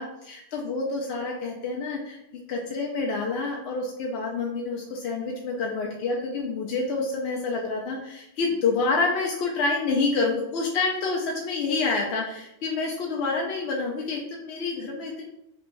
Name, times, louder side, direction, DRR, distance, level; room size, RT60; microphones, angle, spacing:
voice 1, 0.0-2.2 2.5-15.2, left 3 dB, 65° left, -1 dB, 0.7 m, -28 dB
3.4 x 3.1 x 2.6 m, 0.84 s
omnidirectional pair, 1.3 m